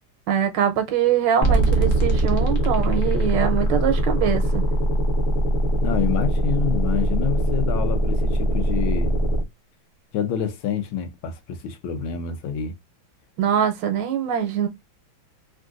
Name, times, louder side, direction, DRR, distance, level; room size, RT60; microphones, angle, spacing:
voice 1, 0.3-4.6 13.4-14.7, right 9 dB, 75° right, 1.3 m, -23 dB
sound 1, 1.4-9.4, right 1 dB, 45° left, 0.9 m, -21 dB
voice 2, 5.8-9.1 10.1-12.7, left 8 dB, 90° left, 1.6 m, -27 dB
3.6 x 2.5 x 2.3 m
omnidirectional pair, 2.2 m